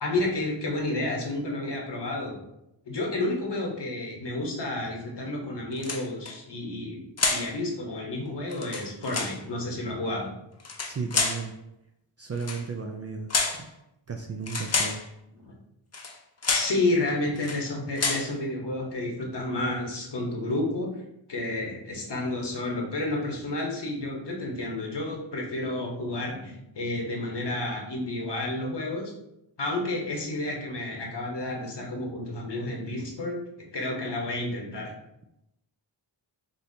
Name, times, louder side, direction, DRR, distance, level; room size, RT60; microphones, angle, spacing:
voice 1, 0.0-2.4 2.8-7.0 7.3-10.3 15.4-15.5 16.5-20.9 21.3-29.1 29.6-33.4 33.7-34.9, left 2 dB, 60° left, -1 dB, 1.2 m, -30 dB
sound 1, 5.8-6.3 7.2-7.5 8.5-9.4 10.6-11.5 12.4-12.6 13.3-13.6 14.5-15.0 15.9-16.1 16.4-16.8 17.4-17.6 18.0-18.3, left 4 dB, 35° left, 0.6 m, -28 dB
voice 2, 10.8-11.5 12.2-13.7 14.1-15.0, right 5 dB, 35° right, 3 dB, 0.4 m, -34 dB
5.4 x 2.8 x 2.7 m, 0.85 s
cardioid pair, 55°, 47 cm